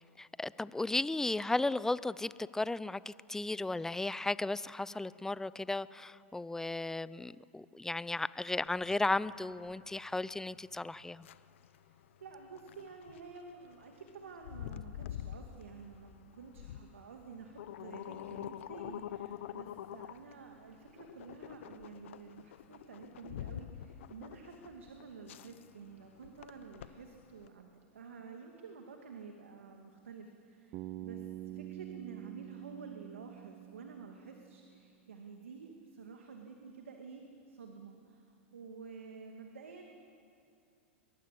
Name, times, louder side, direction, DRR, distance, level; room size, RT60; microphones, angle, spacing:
voice 1, 0.2-11.3, left 2 dB, 5° left, 0.6 m, -35 dB
sound 1, 8.7-27.5, left 11 dB, 70° left, 0.9 m, -47 dB
voice 2, 11.6-39.9, right 5 dB, 85° right, 2.5 m, -50 dB
Bass guitar, 30.7-34.7, right 14 dB, 45° right, 0.6 m, -46 dB
23.5 x 22.5 x 8.5 m
hypercardioid pair, 105°, 7 cm